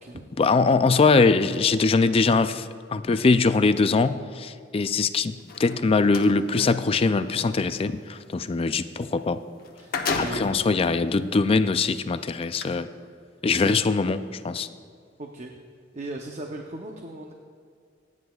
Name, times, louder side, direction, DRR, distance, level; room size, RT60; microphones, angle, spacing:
voice 1, 0.4-9.4 10.1-12.9 13.4-14.2 14.4-14.7, left 4 dB, 30° left, 12 dB, 0.3 m, -22 dB
sound 1, 5.4-6.3 9.2-9.3 9.6-10.7 11.4-11.5 12.4-12.6, left 4 dB, 50° left, 1.0 m, -30 dB
voice 2, 9.8-10.5 13.5-13.8 15.2-15.5 15.9-17.3, right 2 dB, 35° right, 2 dB, 0.7 m, -37 dB
26.5 x 9.6 x 2.4 m, 2.2 s
head